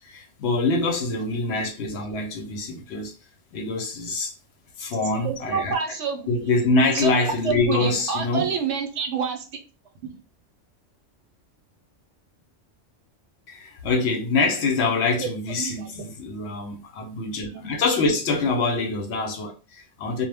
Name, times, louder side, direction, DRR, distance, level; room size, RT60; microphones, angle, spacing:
voice 1, 0.0-3.1 3.5-4.3 4.8-5.7 6.3-8.5 13.5-20.3, left 3 dB, 65° left, 0.8 m, -25 dB
voice 2, 5.1-6.3 6.9-7.1 7.4-9.6 15.2-15.3 15.6-16.1 17.5-17.7, right 6 dB, 75° right, 0.9 m, -28 dB
2.0 x 2.0 x 3.3 m
omnidirectional pair, 1.3 m